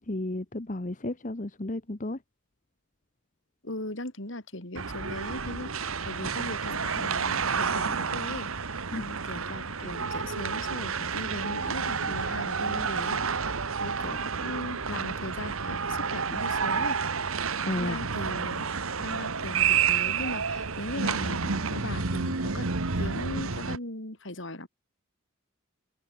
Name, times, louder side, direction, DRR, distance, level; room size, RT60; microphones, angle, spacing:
voice 1, 0.0-2.2 8.9-9.0 17.6-18.0, left 1 dB, 35° left, 1.1 m, -33 dB
voice 2, 3.6-13.2 13.8-17.0 17.8-18.6 19.0-24.7, left 1 dB, 60° left, 3.9 m, -38 dB
sound 1, 4.7-23.8, right 6 dB, 75° right, 1.4 m, -30 dB
head